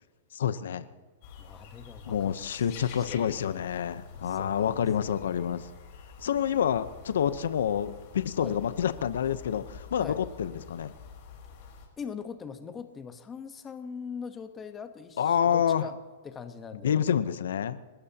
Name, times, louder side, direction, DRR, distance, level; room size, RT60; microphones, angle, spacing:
voice 1, 0.3-0.9 2.0-5.7 6.2-10.9 15.2-15.9 16.8-17.8, left 8 dB, 80° left, 13 dB, 0.8 m, -28 dB
sound 1, 1.2-11.9, left 5 dB, 45° left, 4.5 m, -48 dB
voice 2, 1.4-2.7 3.0-3.6 4.1-5.2 8.4-8.6 10.0-10.2 12.0-15.9 16.2-17.0, left 6 dB, 15° left, 8 dB, 1.1 m, -42 dB
30.0 x 13.5 x 2.9 m, 1.4 s
hypercardioid pair, 150°, 0 cm